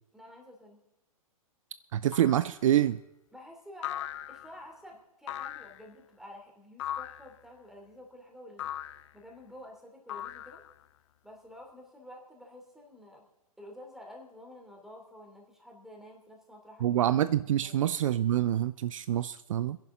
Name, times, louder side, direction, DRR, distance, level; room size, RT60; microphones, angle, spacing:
voice 1, 0.1-0.8 3.3-8.7 9.1-10.6 11.2-13.3 13.6-17.1 17.6-17.8, left 1 dB, ahead, 1 dB, 3.0 m, -50 dB
voice 2, 1.9-3.0 16.8-19.8, right 11 dB, 60° right, 15 dB, 0.5 m, -26 dB
jawharp boing, 2.1-2.5 3.8-4.6 5.3-5.9 6.8-7.3 8.6-9.1 10.1-10.8, left 12 dB, 50° left, 0.5 m, -38 dB
23.5 x 11.0 x 3.8 m, 0.96 s
hypercardioid pair, 120°, 19 cm